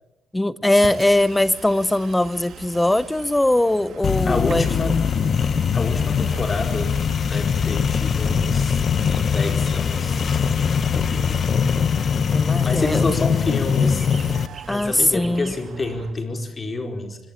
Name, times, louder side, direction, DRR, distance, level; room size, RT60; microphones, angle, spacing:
voice 1, 0.3-4.7 12.3-13.1 14.7-15.5, left 1 dB, 10° left, 17 dB, 0.8 m, -20 dB
Bus, 0.7-16.1, right 7 dB, 70° right, 1.9 m, -41 dB
sound 1, 4.0-14.5, left 6 dB, 50° left, 0.9 m, -21 dB
voice 2, 4.2-5.0 5.7-6.9 7.3-8.8 9.2-10.2 10.6-11.8 12.6-14.1 14.7-17.2, left 3 dB, 30° left, 5 dB, 4.6 m, -28 dB
sound 2, 9.1-15.8, right 4 dB, 35° right, 2.3 m, -46 dB
24.5 x 19.5 x 8.9 m, 0.92 s
cardioid pair, 90°, 0 cm